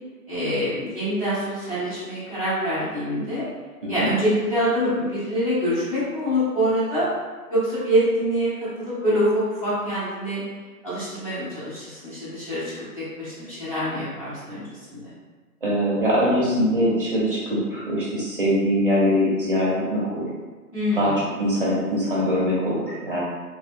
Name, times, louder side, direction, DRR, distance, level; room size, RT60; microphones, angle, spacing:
voice 1, 0.3-3.4 3.9-7.1 7.5-10.4 10.8-12.6 13.2-15.1 20.7-21.2, equal, 25° left, -12 dB, 0.8 m, -25 dB
voice 2, 15.6-20.3 21.0-23.2, equal, 40° right, -7 dB, 0.6 m, -22 dB
3.1 x 2.0 x 3.4 m, 1.4 s
hypercardioid pair, 170°, 46 cm